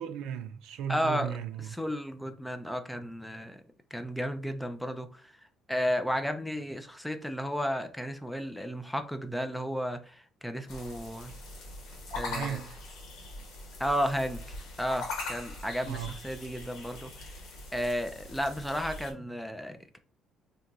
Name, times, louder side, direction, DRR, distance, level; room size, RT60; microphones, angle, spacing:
voice 1, 0.0-1.8 12.3-12.8 15.8-16.1, right 9 dB, 75° right, 0.4 m, -36 dB
voice 2, 0.9-1.3 1.8-3.6 3.9-5.1 5.7-10.2 10.4-11.3 12.2-12.6 13.8-17.1 17.7-20.0, equal, ahead, 0.3 m, -33 dB
sound 1, 10.7-19.1, left 2 dB, 65° left, 1.2 m, -42 dB
2.8 x 2.3 x 3.9 m
cardioid pair, 175°, 0 cm